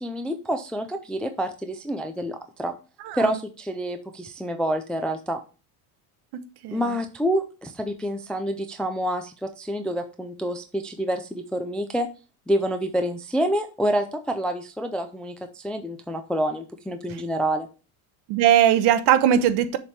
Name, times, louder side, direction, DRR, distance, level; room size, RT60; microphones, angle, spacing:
voice 1, 0.0-2.7 3.1-5.4 6.7-12.1 12.5-17.7, equal, ahead, 0.3 m, -27 dB
voice 2, 18.3-19.8, right 10 dB, 60° right, 0.9 m, -19 dB
7.0 x 3.4 x 5.9 m
cardioid pair, 135°, 45 cm